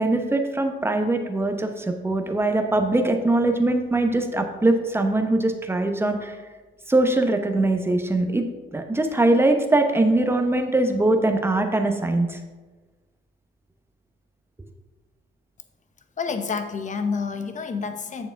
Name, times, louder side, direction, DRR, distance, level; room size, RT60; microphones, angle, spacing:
voice 1, 0.0-6.4 6.9-8.5 8.7-12.4, right 2 dB, 10° right, 5 dB, 0.9 m, -22 dB
voice 2, 16.2-18.3, left 5 dB, 40° left, 8 dB, 0.8 m, -28 dB
8.2 x 6.9 x 3.4 m, 1.3 s
cardioid pair, 90°, 20 cm